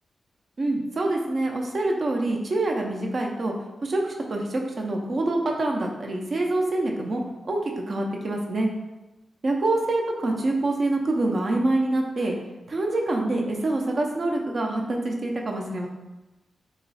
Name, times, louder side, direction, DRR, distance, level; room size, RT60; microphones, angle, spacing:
voice 1, 0.6-3.5 3.8-7.6 7.9-8.7 9.4-12.3 12.7-15.9, right 2 dB, 50° right, 1 dB, 0.5 m, -26 dB
2.9 x 2.3 x 4.0 m, 1.0 s
wide cardioid pair, 100°, 0 cm